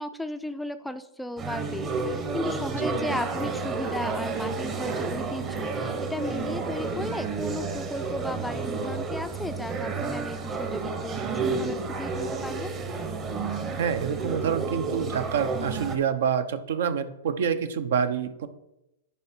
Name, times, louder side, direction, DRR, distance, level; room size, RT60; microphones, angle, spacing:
voice 1, 0.0-12.7, left 1 dB, 5° left, 10 dB, 0.4 m, -35 dB
sound 1, 1.4-16.0, right 4 dB, 25° right, 0.9 m, -31 dB
voice 2, 13.8-18.5, right 7 dB, 70° right, 12 dB, 0.7 m, -27 dB
10.5 x 4.4 x 4.4 m, 0.88 s
hypercardioid pair, 140°, 0 cm